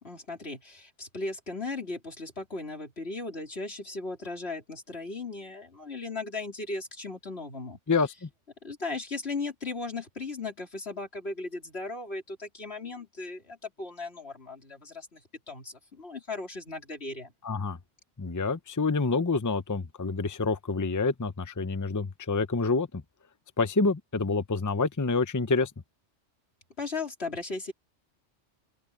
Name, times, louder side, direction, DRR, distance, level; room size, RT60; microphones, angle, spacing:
voice 1, 0.0-7.8 8.6-15.2 15.5-17.3 26.8-27.7, left 3 dB, 60° left, 4.1 m, -37 dB
voice 2, 7.9-8.3 17.4-17.8 18.2-23.0 23.6-25.7, left 3 dB, 20° left, 0.7 m, -27 dB
open air
omnidirectional pair, 1.2 m